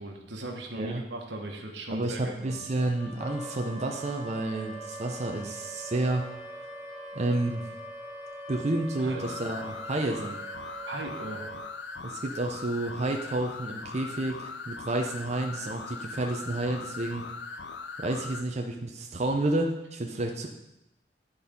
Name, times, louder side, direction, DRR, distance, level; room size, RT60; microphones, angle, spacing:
voice 1, 0.0-2.5 9.0-9.2 10.9-11.4, right 2 dB, 85° right, 2 dB, 1.4 m, -38 dB
voice 2, 1.9-6.5 7.1-7.6 8.5-10.4 12.0-17.2 18.0-20.5, right 2 dB, 40° right, 2 dB, 0.6 m, -30 dB
Wind instrument woodwind instrument, 2.4-9.1, left 3 dB, 30° left, 1.5 m, -48 dB
Wind instrument woodwind instrument 2, 3.2-11.7, right 2 dB, 5° right, 1.6 m, -43 dB
sound 1, 9.2-18.5, left 4 dB, 80° left, 0.6 m, -40 dB
11.0 x 4.3 x 5.3 m, 0.92 s
head